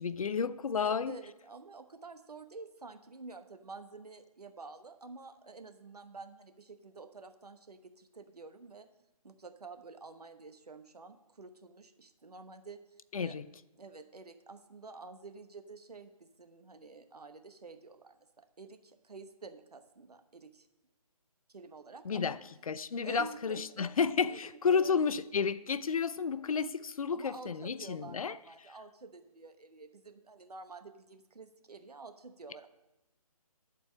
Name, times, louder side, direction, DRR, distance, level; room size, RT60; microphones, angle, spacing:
voice 1, 0.0-1.2 13.1-13.5 22.0-22.4 22.7-28.4, left 6 dB, 65° left, 0.5 m, -31 dB
voice 2, 0.8-8.9 9.2-12.8 13.2-13.4 13.8-20.7 21.5-22.4 23.0-23.9 24.2-25.0 27.1-32.7, right 4 dB, 85° right, 1.0 m, -49 dB
11.5 x 4.5 x 7.2 m
figure-of-eight pair, 155°, 19 cm